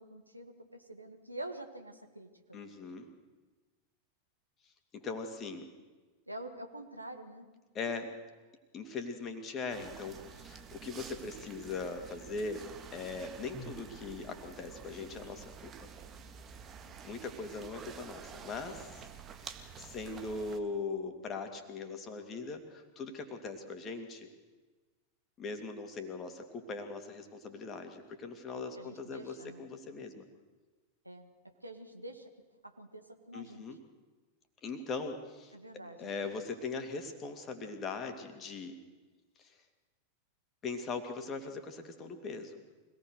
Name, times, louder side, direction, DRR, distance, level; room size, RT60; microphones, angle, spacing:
voice 1, 0.0-2.6 6.3-7.5 28.8-29.6 31.1-32.3 32.6-33.6 35.5-36.1, right 1 dB, 85° right, 5 dB, 1.9 m, -47 dB
voice 2, 2.5-3.1 4.9-5.7 7.7-8.1 8.7-12.6 12.9-15.9 17.0-19.1 19.4-24.3 25.4-30.3 33.3-33.8 34.6-35.6 36.0-38.7 39.4-39.5 40.6-42.6, left 4 dB, 25° left, 6 dB, 2.7 m, -40 dB
sound 1, 9.7-20.6, right 6 dB, 25° right, 1.9 m, -49 dB
25.0 x 18.0 x 6.5 m, 1.3 s
figure-of-eight pair, 90°, 0 cm